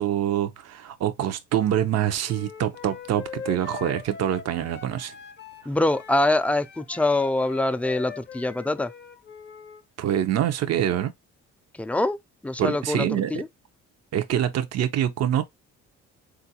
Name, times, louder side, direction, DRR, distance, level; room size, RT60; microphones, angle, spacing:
voice 1, 0.0-5.1 10.0-11.1 12.6-13.3 14.1-15.4, right 10 dB, 55° right, 0.6 m, -25 dB
Wind instrument woodwind instrument, 2.3-9.8, left 6 dB, 35° left, 0.6 m, -41 dB
voice 2, 5.7-8.9 11.7-12.2 12.4-13.5, left 2 dB, 5° left, 0.3 m, -24 dB
3.7 x 2.5 x 2.7 m
cardioid pair, 90°, 30 cm